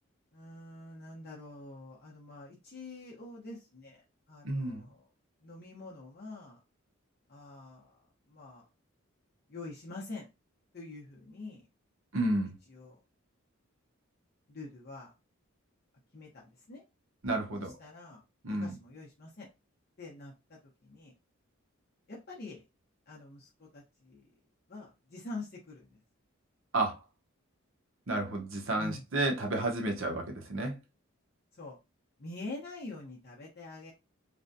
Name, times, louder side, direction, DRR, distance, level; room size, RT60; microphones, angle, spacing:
voice 1, 0.3-4.0 4.3-5.0 5.4-6.6 7.3-8.0 8.3-8.6 9.5-10.3 10.7-11.7 12.7-13.0 14.5-15.1 16.1-16.8 17.6-18.2 18.6-19.5 20.0-21.1 22.1-22.6 23.1-24.3 24.7-26.0 28.8-29.0 31.6-31.8 32.2-33.9, left 2 dB, 50° left, 0.7 m, -46 dB
voice 2, 4.4-4.9 12.1-12.6 17.2-17.7 18.4-18.8 26.7-27.0 28.1-30.8, right 2 dB, 75° right, 0.9 m, -31 dB
3.3 x 2.2 x 2.6 m
head